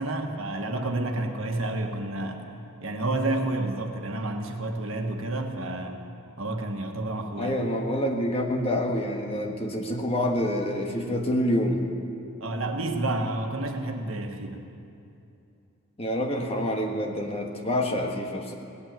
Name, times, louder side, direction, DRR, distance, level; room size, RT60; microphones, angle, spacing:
voice 1, 0.0-2.5 2.8-6.0 6.4-7.5 12.4-14.7, right 2 dB, 80° right, 4 dB, 1.4 m, -30 dB
voice 2, 7.4-11.8 16.0-18.5, left 1 dB, 30° left, 2 dB, 1.4 m, -27 dB
18.0 x 8.9 x 9.0 m, 2.7 s
head